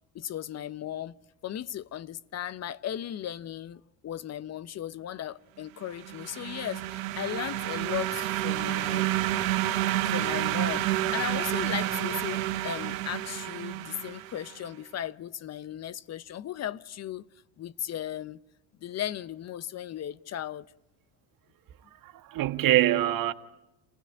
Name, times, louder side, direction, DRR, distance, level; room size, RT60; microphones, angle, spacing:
voice 1, 0.1-1.2 1.4-9.1 10.1-17.3 17.6-18.4 18.8-20.7, left 11 dB, 40° left, 0.8 m, -36 dB
sound 1, 5.9-14.5, right 14 dB, 85° right, 1.4 m, -30 dB
voice 2, 22.0-23.3, right 14 dB, 55° right, 1.6 m, -24 dB
27.5 x 16.5 x 9.9 m
hypercardioid pair, 80°, 39 cm